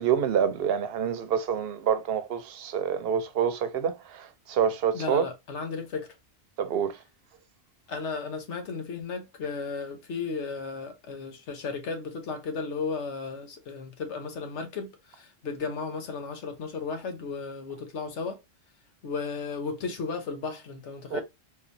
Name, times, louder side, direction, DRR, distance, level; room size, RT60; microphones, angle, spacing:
voice 1, 0.0-5.2 6.6-7.0 21.1-21.2, right 7 dB, 65° right, 0.8 m, -27 dB
voice 2, 4.9-6.1 7.9-18.4 19.0-21.2, left 4 dB, 85° left, 1.2 m, -34 dB
3.7 x 2.9 x 2.5 m
omnidirectional pair, 1.1 m